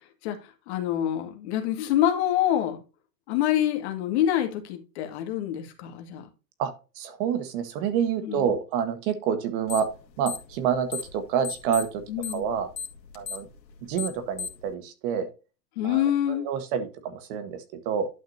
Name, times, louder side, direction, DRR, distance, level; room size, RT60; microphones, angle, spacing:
voice 1, 0.2-2.8 3.3-6.3 8.2-8.5 12.1-12.4 15.8-16.5, left 11 dB, 40° left, 2.0 m, -26 dB
voice 2, 6.6-9.9 10.2-12.0 12.3-12.7 13.1-13.5 13.9-15.3 15.8-18.1, right 7 dB, 30° right, 1.5 m, -28 dB
sound 1, 9.7-10.0 10.2-11.2 11.4-14.7, left 6 dB, 85° left, 2.2 m, -35 dB
11.5 x 6.0 x 2.7 m
hypercardioid pair, 165°, 49 cm